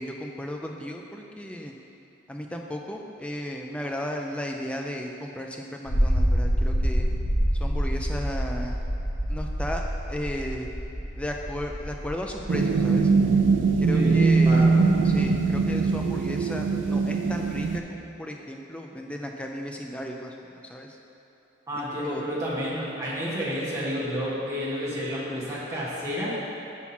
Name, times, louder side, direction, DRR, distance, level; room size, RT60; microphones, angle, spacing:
voice 1, 0.0-1.7 2.3-7.1 7.6-8.8 9.3-9.8 10.1-10.7 11.2-13.1 13.8-14.7 15.0-21.0 22.0-22.2, equal, 5° left, 1 dB, 0.3 m, -34 dB
sound 1, 5.9-16.0, equal, 45° left, 1.4 m, -28 dB
sound 2, 12.5-17.8, right 4 dB, 80° right, 0.4 m, -21 dB
voice 2, 21.7-26.3, equal, 15° right, -9 dB, 1.4 m, -30 dB
5.9 x 5.6 x 4.3 m, 2.9 s
head